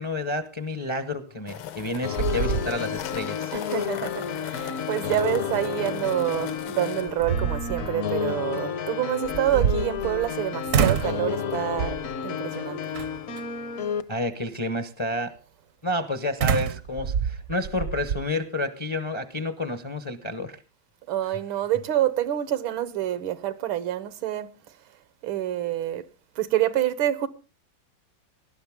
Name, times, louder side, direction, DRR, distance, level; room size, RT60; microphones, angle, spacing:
voice 1, 0.0-3.9 4.7-4.8 14.1-15.4 15.8-20.6, left 1 dB, 40° left, 0.4 m, -30 dB
sound 1, 1.5-7.0, left 10 dB, 75° left, 1.6 m, -39 dB
sound 2, 1.5-1.9 2.2-3.2 3.6-3.7 6.3-6.4 7.0-7.9 9.2-10.4 10.7-11.2 11.8-12.2 12.9-13.4 16.4-18.2, right 8 dB, 60° right, 0.8 m, -27 dB
sound 3, 2.0-14.0, left 7 dB, 60° left, 0.9 m, -31 dB
voice 2, 3.5-12.0 12.2-12.8 21.1-24.5 25.2-26.0 26.4-27.3, right 12 dB, 80° right, 1.7 m, -27 dB
19.5 x 11.5 x 3.6 m
omnidirectional pair, 2.2 m